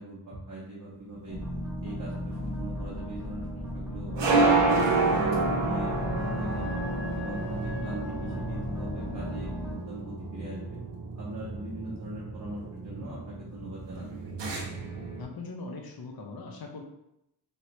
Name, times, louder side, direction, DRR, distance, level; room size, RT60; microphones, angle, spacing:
voice 1, 0.0-1.4 1.8-4.6 4.9-6.8 7.1-10.8 11.2-14.0, right 1 dB, 50° right, -7 dB, 0.9 m, -40 dB
sound 1, 1.2-15.2, right 3 dB, 85° right, 0.7 m, -30 dB
sound 2, 1.3-9.8, left 1 dB, 5° right, 0.7 m, -36 dB
Wind instrument woodwind instrument, 5.1-9.8, left 7 dB, 80° left, 0.9 m, -44 dB
voice 2, 15.2-16.8, left 3 dB, 60° left, 1 dB, 0.7 m, -40 dB
3.1 x 3.0 x 2.9 m, 0.83 s
wide cardioid pair, 85°, 42 cm